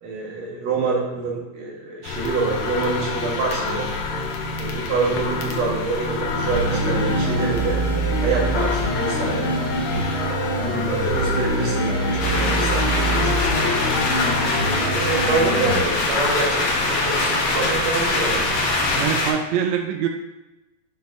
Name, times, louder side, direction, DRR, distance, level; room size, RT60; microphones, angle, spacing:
voice 1, 0.0-3.9 4.6-7.8 8.2-9.6 10.0-13.7 14.5-18.5, right 4 dB, 65° right, -2 dB, 2.5 m, -26 dB
sound 1, 2.0-19.0, left 3 dB, 85° left, 1.2 m, -28 dB
sound 2, 6.5-15.8, right 1 dB, 30° left, 1.3 m, -24 dB
sound 3, 12.2-19.3, left 2 dB, 65° left, 2.2 m, -23 dB
voice 2, 19.0-20.1, right 8 dB, 80° right, 4 dB, 1.6 m, -23 dB
8.1 x 5.1 x 2.5 m, 1.0 s
omnidirectional pair, 3.6 m